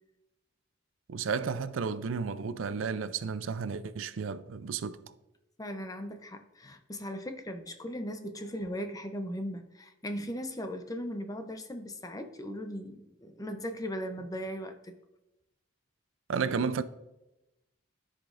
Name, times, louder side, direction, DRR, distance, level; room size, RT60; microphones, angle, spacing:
voice 1, 1.1-5.0 16.3-16.8, right 5 dB, 90° right, 0.4 m, -32 dB
voice 2, 5.6-14.9, equal, 20° left, 0.6 m, -38 dB
13.5 x 5.0 x 2.5 m
head